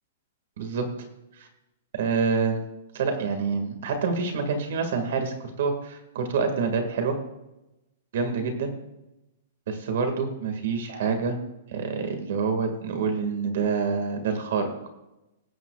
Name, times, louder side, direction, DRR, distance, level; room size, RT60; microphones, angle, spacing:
voice 1, 0.6-0.9 1.4-1.5 1.9-2.6 2.9-7.2 8.1-8.7 9.7-11.4 11.7-14.7, right 5 dB, 60° right, 6 dB, 2.0 m, -27 dB
18.0 x 9.2 x 2.4 m, 0.94 s
hypercardioid pair, 170°, 0 cm